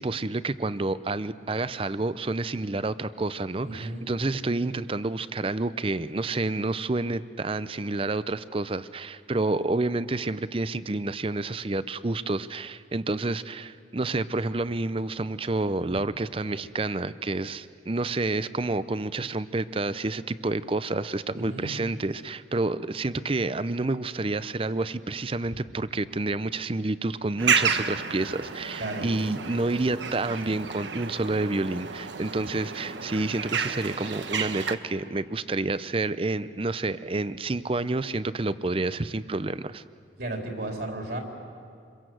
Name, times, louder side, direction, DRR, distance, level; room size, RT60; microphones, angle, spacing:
voice 1, 0.0-39.8, right 2 dB, 30° right, 15 dB, 0.6 m, -29 dB
voice 2, 3.6-4.1 21.4-21.7 28.8-29.1 40.2-41.2, right 2 dB, 60° right, 2 dB, 3.6 m, -34 dB
sound 1, 27.4-34.8, right 6 dB, 80° right, 1.2 m, -31 dB
28.0 x 22.5 x 7.8 m, 2.5 s
head